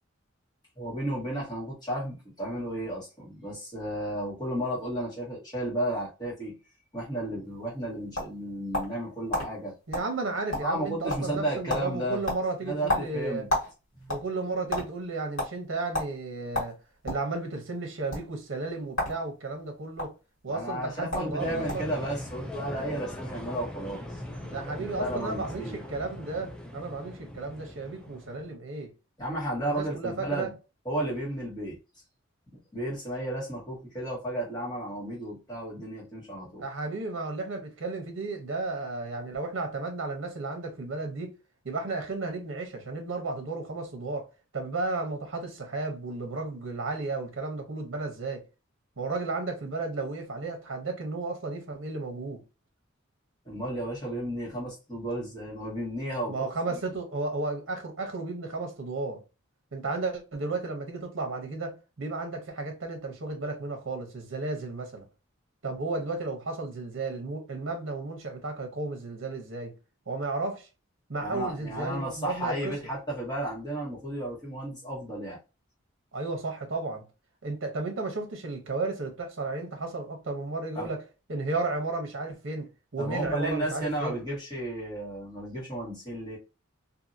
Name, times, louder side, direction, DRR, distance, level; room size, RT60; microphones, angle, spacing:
voice 1, 0.8-6.6 6.9-9.7 10.6-12.2 12.6-13.5 14.0-14.1 20.5-24.0 24.8-25.8 29.2-30.5 30.8-31.8 32.5-36.7 53.4-56.3 56.7-56.8 71.2-75.4 80.7-80.9 83.0-86.4, right 1 dB, 20° left, 1.5 m, -33 dB
sound 1, 7.6-9.0 9.3-9.5 9.9-10.1 10.4-10.8 11.1-11.4 11.7-11.9 12.3-13.7 14.0-14.9 15.4-15.5 15.9-16.1 16.5-17.3 18.0-18.2 18.9-19.2 19.5-20.1 20.8-20.9 21.1-21.3 21.7-21.9, left 1 dB, 75° left, 1.6 m, -30 dB
voice 2, 9.9-13.5 14.1-16.8 17.0-20.1 20.4-21.9 24.5-28.9 29.7-30.5 36.6-41.3 41.6-44.3 44.5-48.4 49.0-52.4 56.3-59.2 59.7-65.1 65.6-69.7 70.1-70.7 71.1-72.7 76.1-77.0 77.4-81.0 81.3-84.2, right 3 dB, 65° right, 0.8 m, -33 dB
sound 2, 21.4-28.5, left 1 dB, 5° left, 0.4 m, -40 dB
2.7 x 2.6 x 2.6 m
head